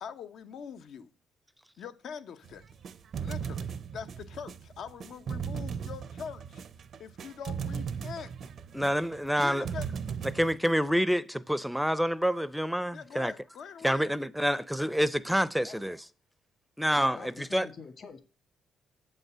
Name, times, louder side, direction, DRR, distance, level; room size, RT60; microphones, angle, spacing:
voice 1, 0.0-1.1 1.8-2.6 3.2-6.6 7.0-8.5 9.4-9.9 12.9-14.1 14.4-14.6 17.1-17.3, left 7 dB, 70° left, 0.9 m, -43 dB
sound 1, 2.4-10.6, right 7 dB, 60° right, 0.6 m, -37 dB
voice 2, 8.7-9.7 10.3-13.3 13.8-16.0 16.8-17.7, equal, ahead, 0.6 m, -27 dB
voice 3, 17.0-18.2, left 5 dB, 50° left, 1.8 m, -46 dB
7.4 x 5.5 x 7.4 m
cardioid pair, 90°, 0 cm